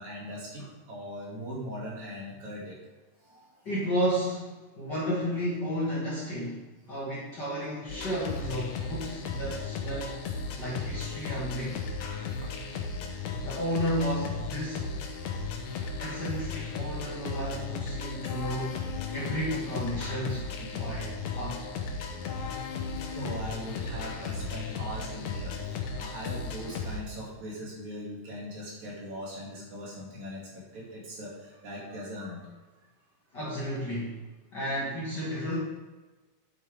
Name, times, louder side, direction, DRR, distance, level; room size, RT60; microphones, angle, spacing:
voice 1, 0.0-2.8 3.2-3.5 23.1-32.5, equal, 60° right, -5 dB, 3.9 m, -40 dB
voice 2, 3.6-6.6 6.9-10.2 10.6-11.8 13.4-14.8 16.0-18.8 19.1-21.6 33.3-34.2 34.5-35.6, equal, 40° left, -7 dB, 2.1 m, -32 dB
sound 1, 7.9-27.0, left 4 dB, 65° left, 2.0 m, -35 dB
9.5 x 8.6 x 3.6 m, 1.2 s
omnidirectional pair, 3.7 m